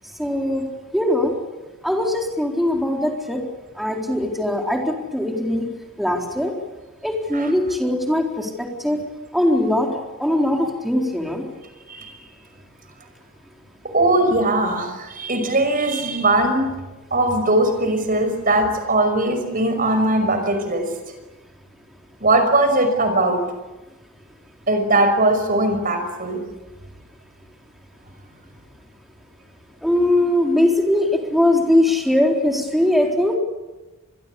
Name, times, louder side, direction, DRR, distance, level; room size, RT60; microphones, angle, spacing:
voice 1, 0.2-0.6 0.9-1.3 1.8-3.4 3.8-5.7 6.0-6.5 7.0-9.0 9.3-9.9 10.2-11.4 29.8-33.4, left 1 dB, ahead, 1 dB, 4.0 m, -20 dB
voice 2, 13.9-16.7 17.1-20.8 22.2-23.4 24.7-26.4, right 2 dB, 40° right, 7 dB, 5.6 m, -19 dB
27.0 x 21.5 x 8.5 m, 1.1 s
head